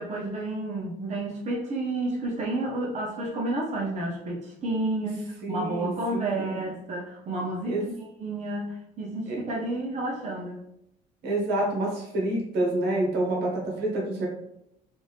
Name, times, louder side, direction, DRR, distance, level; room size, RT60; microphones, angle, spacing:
voice 1, 0.0-7.8 8.2-10.6, right 2 dB, 45° right, -2 dB, 0.8 m, -31 dB
voice 2, 5.4-6.6 7.6-7.9 9.3-9.4 11.2-14.3, right 1 dB, 80° right, -2 dB, 1.2 m, -28 dB
3.3 x 2.7 x 3.3 m, 0.79 s
cardioid pair, 110°, 17 cm